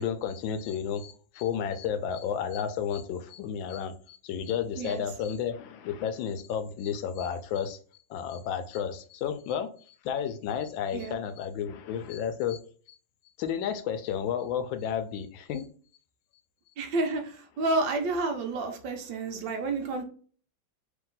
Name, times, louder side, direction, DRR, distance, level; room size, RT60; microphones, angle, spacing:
voice 1, 0.0-7.8 8.1-12.6 13.4-15.7, left 8 dB, 85° left, 9 dB, 1.4 m, -32 dB
voice 2, 16.8-20.0, right 3 dB, 75° right, 4 dB, 1.5 m, -30 dB
3.5 x 2.9 x 3.8 m, 0.43 s
omnidirectional pair, 2.0 m